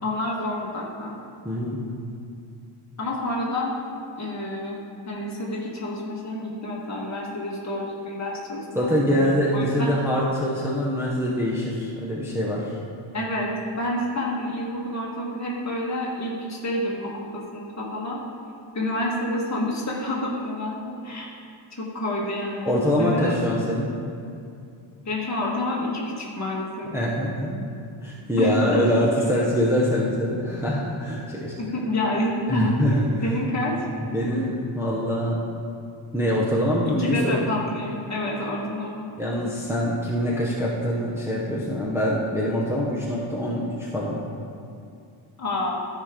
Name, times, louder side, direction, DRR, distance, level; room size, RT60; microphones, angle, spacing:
voice 1, 0.0-1.2 3.0-3.7 4.2-4.8 5.1-9.9 13.1-18.2 18.7-21.3 21.7-23.6 25.0-26.9 28.4-28.9 29.2-29.3 31.6-32.7 33.2-33.7 37.0-39.1 45.4-45.7, left 1 dB, 35° left, -4 dB, 1.6 m, -28 dB
voice 2, 1.4-1.8 8.7-12.8 22.7-23.9 26.9-27.7 28.0-31.6 32.5-33.3 34.0-35.4 36.1-37.4 39.2-44.2, equal, 5° right, -6 dB, 0.7 m, -24 dB
13.5 x 5.0 x 3.7 m, 2.5 s
wide cardioid pair, 180°, 50 cm